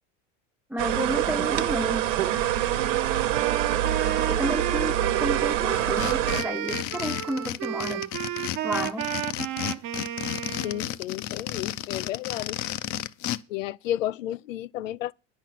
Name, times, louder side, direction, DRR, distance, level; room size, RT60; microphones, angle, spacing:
voice 1, 0.7-2.1 4.3-8.1 8.6-9.1, equal, 5° right, 0.5 m, -31 dB
sound 1, 0.8-6.4, right 12 dB, 75° right, 1.2 m, -25 dB
Wind instrument woodwind instrument, 2.2-10.9, right 12 dB, 50° right, 1.2 m, -33 dB
sound 2, 5.7-13.4, left 13 dB, 50° left, 0.7 m, -32 dB
voice 2, 10.6-12.6 13.5-15.1, left 13 dB, 85° left, 0.5 m, -32 dB
9.9 x 6.1 x 7.5 m
hypercardioid pair, 85°, 38 cm